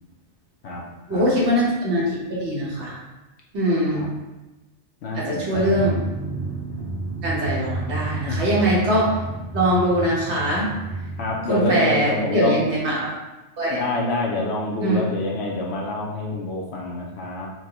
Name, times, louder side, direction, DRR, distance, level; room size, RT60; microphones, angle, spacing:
voice 1, 1.1-2.9 3.5-4.1 5.1-6.0 7.2-9.1 9.5-10.7 11.5-13.1 13.6-13.8 14.8-15.0, equal, 60° right, -5 dB, 1.3 m, -22 dB
voice 2, 5.0-5.9 8.3-8.4 11.2-12.6 13.7-17.5, left 2 dB, 65° left, -2 dB, 0.8 m, -27 dB
Drum, 5.5-12.0, right 2 dB, 25° right, 0.6 m, -31 dB
4.5 x 2.2 x 2.8 m, 1.1 s
omnidirectional pair, 1.3 m